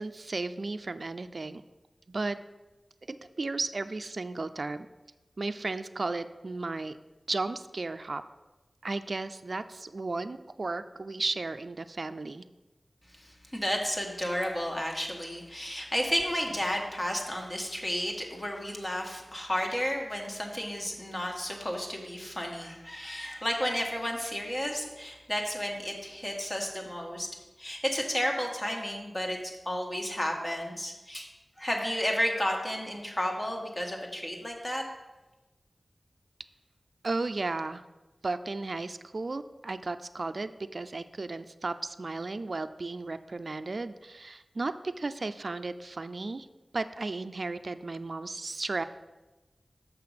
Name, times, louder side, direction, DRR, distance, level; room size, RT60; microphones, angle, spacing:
voice 1, 0.0-1.6 2.1-2.4 3.1-4.9 5.4-7.0 7.3-8.2 8.8-12.4 37.0-37.8 38.2-46.5 46.7-48.8, right 3 dB, 60° right, 10 dB, 0.3 m, -34 dB
voice 2, 13.1-27.3 27.6-29.4 29.7-31.3 31.6-34.8, equal, 30° left, 1 dB, 1.7 m, -32 dB
6.7 x 5.8 x 5.8 m, 1.1 s
wide cardioid pair, 50°, 0 cm